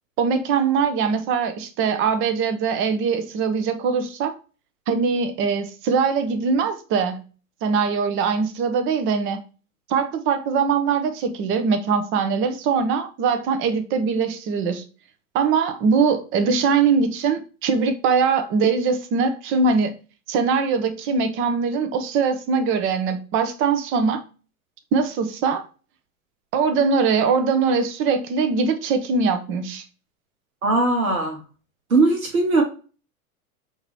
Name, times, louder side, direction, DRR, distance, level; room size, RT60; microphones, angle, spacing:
voice 1, 0.2-4.3 4.9-7.2 7.6-9.4 9.9-14.8 15.3-19.9 20.3-24.2 24.9-25.6 26.5-29.8, right 5 dB, 30° right, 0.7 m, -22 dB
voice 2, 30.6-31.4 31.9-32.6, right 3 dB, 75° right, 1.4 m, -19 dB
5.8 x 2.9 x 3.1 m
figure-of-eight pair, 90°, 43 cm